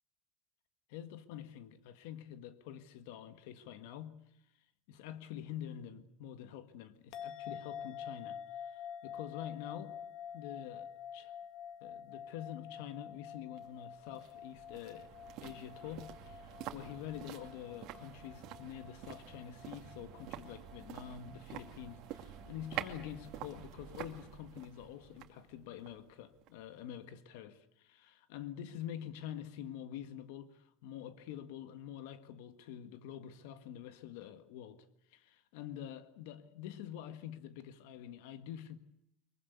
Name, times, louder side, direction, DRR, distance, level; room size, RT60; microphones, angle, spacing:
voice 1, 0.9-4.2 4.9-10.0 10.3-11.4 11.8-15.1 15.4-38.8, left 10 dB, 85° left, 1.6 m, -47 dB
sound 1, 7.1-23.6, left 8 dB, 55° left, 1.6 m, -49 dB
sound 2, 13.6-26.7 27.0-27.1, right 12 dB, 50° right, 2.4 m, -48 dB
23.5 x 23.0 x 8.1 m
cardioid pair, 165°, 0 cm